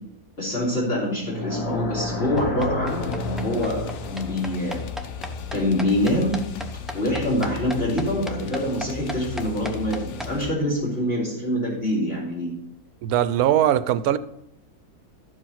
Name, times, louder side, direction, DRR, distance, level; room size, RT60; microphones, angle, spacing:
voice 1, 0.4-4.8 5.5-6.4 6.9-12.5, left 1 dB, 40° left, -6 dB, 3.4 m, -25 dB
sound 1, 1.2-6.3, left 2 dB, 85° left, 1.8 m, -32 dB
sound 2, 2.4-10.3, equal, ahead, 0.5 m, -35 dB
sound 3, 2.9-10.5, left 6 dB, 60° left, 0.9 m, -36 dB
voice 2, 13.0-14.2, right 11 dB, 75° right, 14 dB, 1.1 m, -20 dB
13.0 x 5.0 x 5.7 m, 0.77 s
omnidirectional pair, 1.6 m